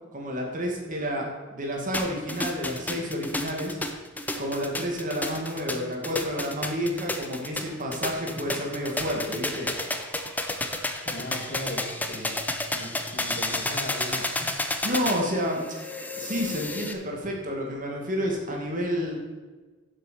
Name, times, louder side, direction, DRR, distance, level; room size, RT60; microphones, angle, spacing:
voice 1, 0.1-3.8 4.4-9.7 14.8-15.6 16.1-19.2, equal, 40° right, 0 dB, 2.0 m, -30 dB
sound 1, 1.9-16.9, left 2 dB, 10° left, 0.7 m, -31 dB
voice 2, 11.1-14.7, left 1 dB, 50° left, 2 dB, 1.7 m, -38 dB
7.9 x 7.4 x 6.9 m, 1.3 s
head